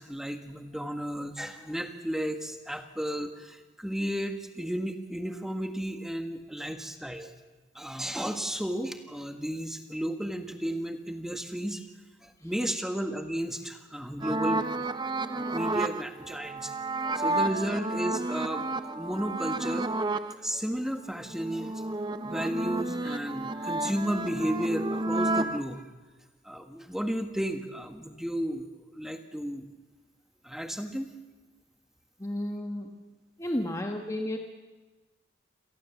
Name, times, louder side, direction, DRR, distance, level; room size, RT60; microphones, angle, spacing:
voice 1, 0.0-7.3 7.7-11.9 12.2-14.7 15.3-16.7 17.1-19.9 20.4-21.8 22.2-25.8 26.4-29.7 30.4-31.1, equal, ahead, 6 dB, 1.6 m, -33 dB
sound 1, 14.2-20.3 20.8-25.6, right 2 dB, 25° right, 0.8 m, -31 dB
voice 2, 32.2-32.9 33.4-34.4, left 1 dB, 15° left, 2 dB, 1.3 m, -32 dB
28.0 x 18.0 x 7.2 m, 1.3 s
head